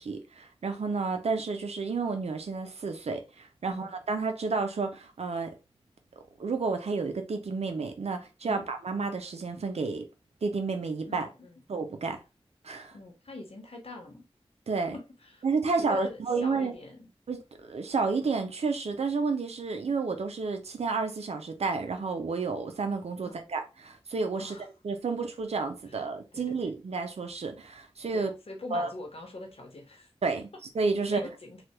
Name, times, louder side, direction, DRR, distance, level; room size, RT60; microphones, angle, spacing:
voice 1, 0.0-5.5 6.4-10.1 10.4-11.3 11.7-12.2 12.6-12.9 14.7-15.0 15.4-16.7 17.3-24.6 24.8-28.3 28.7-28.9 30.2-30.5 30.7-31.2, right 4 dB, 85° right, 0.6 m, -31 dB
voice 2, 11.0-11.6 12.9-14.2 14.9-15.4 15.7-17.1 23.2-23.5 24.4-24.7 25.8-26.0 26.3-26.7 28.1-30.1 31.0-31.6, left 2 dB, 70° left, 1.0 m, -44 dB
3.3 x 2.3 x 2.9 m
wide cardioid pair, 50°, 10 cm